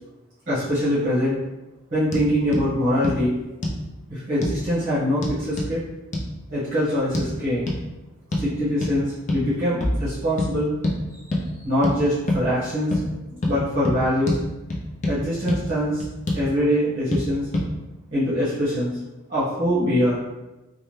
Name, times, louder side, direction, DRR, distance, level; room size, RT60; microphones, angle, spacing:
voice 1, 0.5-1.4 1.9-3.3 4.1-5.8 6.5-7.7 8.4-10.7 11.1-11.2 11.6-12.9 13.4-14.4 15.0-16.0 16.3-17.5 18.1-19.0 19.3-20.2, equal, 40° right, -11 dB, 1.0 m, -23 dB
sound 1, 2.1-2.3 2.5-2.7 3.0-3.2 3.6-3.8 4.4-4.6 5.2-5.7 6.1-6.3 7.1-7.3 7.7-7.8 8.3-8.5 8.8-9.0 9.3-9.5 9.8-10.0 10.4-10.5 10.8-11.0 11.3-11.4 11.8-12.0 12.3-12.4 12.9-13.0 13.4-13.6 13.8-14.0 14.3-14.4 14.7-15.2 15.5-15.6 16.0-16.4 17.1-17.2 17.5-17.7, left 1 dB, 35° left, 0.5 m, -24 dB
2.8 x 2.1 x 3.1 m, 1.0 s
head